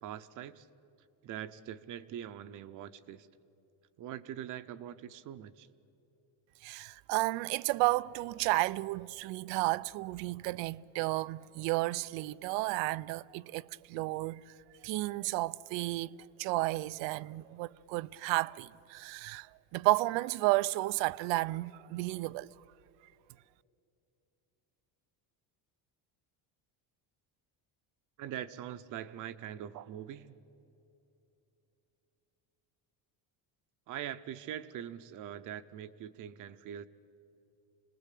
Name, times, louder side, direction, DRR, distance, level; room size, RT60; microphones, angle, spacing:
voice 1, 0.0-0.7 1.2-3.3 4.0-5.7 28.2-30.4 33.9-36.9, right 10 dB, 45° right, 0.7 m, -43 dB
voice 2, 6.6-14.4 14.8-22.5, right 19 dB, 90° right, 0.6 m, -32 dB
26.5 x 19.5 x 8.4 m
cardioid pair, 175°, 43 cm